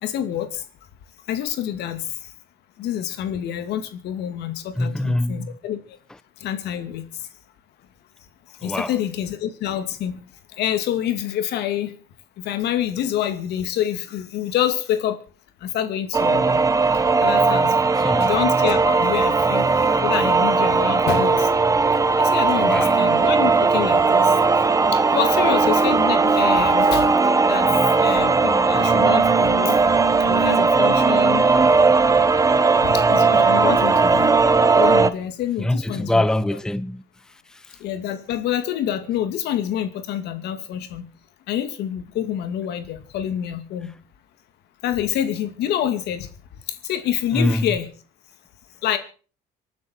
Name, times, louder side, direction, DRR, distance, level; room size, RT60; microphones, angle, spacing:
voice 1, 0.0-0.7 1.3-2.3 2.8-6.0 6.4-7.3 8.6-10.2 10.5-12.0 12.4-15.2 15.6-16.6 17.1-19.7 20.0-21.5 22.2-24.4 24.9-29.8 30.2-31.5 32.8-34.3 34.7-36.3 37.8-41.1 41.5-43.9 44.8-46.3 46.7-47.9 48.8-49.0, left 10 dB, 80° left, 2.5 m, -27 dB
voice 2, 4.8-5.5 8.6-8.9 18.0-18.3 22.6-23.0 35.6-37.0 47.3-47.7, left 1 dB, 5° left, 0.8 m, -23 dB
sound 1, 16.1-35.1, right 4 dB, 20° right, 1.0 m, -18 dB
26.0 x 9.5 x 4.6 m
cardioid pair, 110°, 17 cm